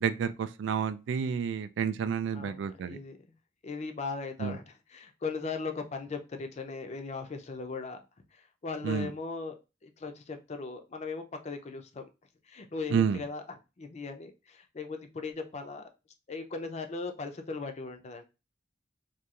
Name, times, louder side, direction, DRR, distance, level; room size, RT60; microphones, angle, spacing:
voice 1, 0.0-3.0 4.4-4.6 8.8-9.1 12.9-13.2, right 7 dB, 85° right, 0.3 m, -30 dB
voice 2, 2.3-3.2 3.6-8.0 8.3-9.5 9.8-12.0 12.5-15.9 16.3-18.2, left 4 dB, 40° left, 0.4 m, -38 dB
2.8 x 2.3 x 2.3 m
head